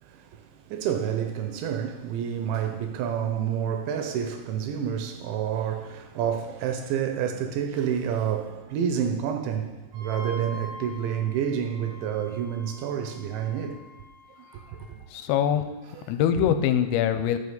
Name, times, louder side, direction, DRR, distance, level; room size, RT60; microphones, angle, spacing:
voice 1, 0.0-13.8 14.4-15.0, right 8 dB, 80° right, 2.8 m, -29 dB
Wind instrument woodwind instrument, 9.9-14.9, left 2 dB, 60° right, 1.8 m, -45 dB
voice 2, 15.1-15.7 16.1-17.4, left 9 dB, 90° left, 3.4 m, -23 dB
13.0 x 6.4 x 6.9 m
omnidirectional pair, 5.9 m